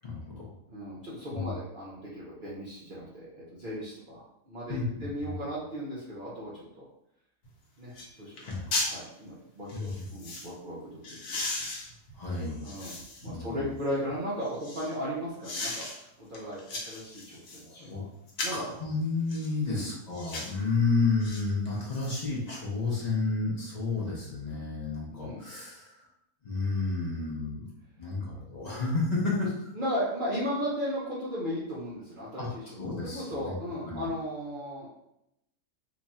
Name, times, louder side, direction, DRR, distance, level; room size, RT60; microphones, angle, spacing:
voice 1, 0.0-0.5 1.3-1.5 4.7-5.3 8.4-8.7 9.7-10.0 12.1-12.7 13.2-13.7 17.6-18.0 18.5-26.1 26.4-27.7 28.0-29.7 32.4-32.5 32.8-33.6 33.8-34.1, left 3 dB, 45° left, -4 dB, 0.5 m, -31 dB
voice 2, 0.7-6.9 7.8-8.4 8.8-11.5 12.6-12.9 13.2-18.1 18.4-18.6 19.6-19.9 25.1-25.4 29.7-34.9, equal, 45° right, -8 dB, 0.7 m, -36 dB
sound 1, 7.4-7.5 7.9-8.1 8.4-8.9 9.7-10.5 11.0-13.3 13.8-14.9 15.4-15.9 16.3-17.7 18.3-18.7 19.3-19.5 20.1-20.6 21.2-21.4 21.8-22.6 22.9-23.0, left 2 dB, 70° left, 1.4 m, -36 dB
3.0 x 2.4 x 4.1 m, 0.83 s
omnidirectional pair, 1.8 m